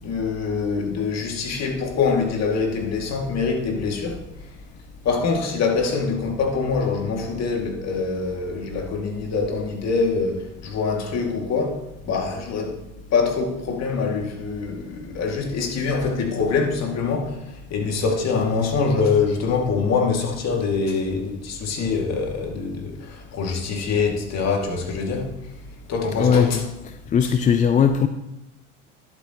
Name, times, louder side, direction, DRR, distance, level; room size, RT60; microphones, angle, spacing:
voice 1, 0.0-4.2 5.0-12.8 13.1-25.3 25.9-26.6, left 4 dB, 45° left, 2.3 m, -24 dB
voice 2, 26.2-26.6 27.1-28.1, left 7 dB, 20° left, 0.4 m, -18 dB
11.5 x 8.1 x 3.0 m
hypercardioid pair, 85°, 37 cm